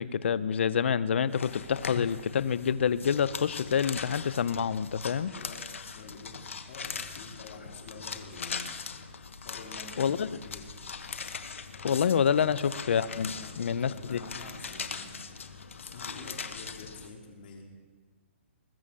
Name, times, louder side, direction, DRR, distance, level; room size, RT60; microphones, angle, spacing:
voice 1, 0.0-5.3 10.0-10.3 11.8-14.2, left 7 dB, 65° left, 17 dB, 0.7 m, -27 dB
sound 1, 1.3-17.1, left 5 dB, 85° left, 1.2 m, -40 dB
voice 2, 5.3-8.8 9.4-10.1 10.4-10.8 13.3-15.5 15.7-17.7, left 3 dB, 50° left, 1 dB, 3.0 m, -47 dB
20.5 x 7.0 x 7.5 m, 1.4 s
hypercardioid pair, 155°, 7 cm